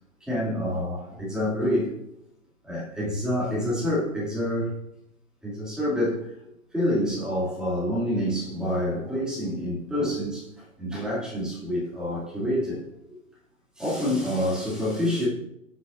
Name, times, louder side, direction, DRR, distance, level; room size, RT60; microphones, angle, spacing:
voice 1, 0.2-1.9 2.6-4.7 5.4-10.5 10.8-12.8 13.8-15.3, equal, ahead, -8 dB, 2.8 m, -27 dB
8.4 x 6.4 x 2.7 m, 0.80 s
hypercardioid pair, 140°, 41 cm